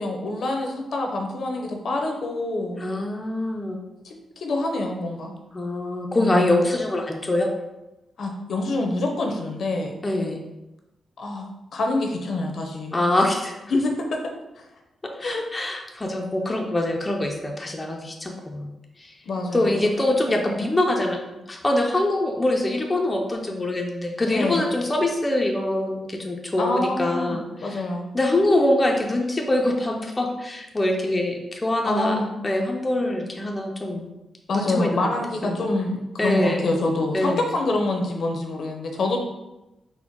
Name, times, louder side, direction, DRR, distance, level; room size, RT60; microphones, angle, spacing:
voice 1, 0.0-2.8 4.0-5.3 6.2-6.5 8.2-10.0 11.2-13.0 13.7-13.9 14.6-14.7 15.2-15.4 19.2-20.0 24.3-24.7 26.6-28.1 31.8-32.3 34.5-39.2, left 2 dB, 60° left, 2 dB, 0.6 m, -26 dB
voice 2, 2.8-3.8 5.5-7.5 10.0-10.4 12.9-13.6 15.0-18.7 19.0-19.1 19.5-21.2 21.5-27.8 28.1-32.2 32.4-34.1 34.5-35.2 35.4-35.6 36.2-36.7 37.1-37.5, left 1 dB, 20° left, 1 dB, 0.4 m, -24 dB
4.2 x 2.1 x 4.4 m, 0.98 s
wide cardioid pair, 125°, 0 cm